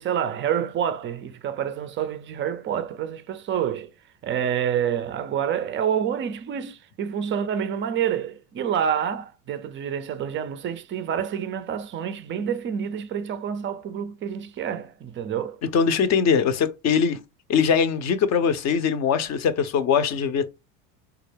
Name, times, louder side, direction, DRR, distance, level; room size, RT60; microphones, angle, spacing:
voice 1, 0.0-3.9 4.2-15.6, right 8 dB, 25° right, 0.4 m, -28 dB
voice 2, 15.7-17.2 17.5-20.5, left 6 dB, 35° left, 0.6 m, -21 dB
4.0 x 2.4 x 3.2 m
hypercardioid pair, 95°, 47 cm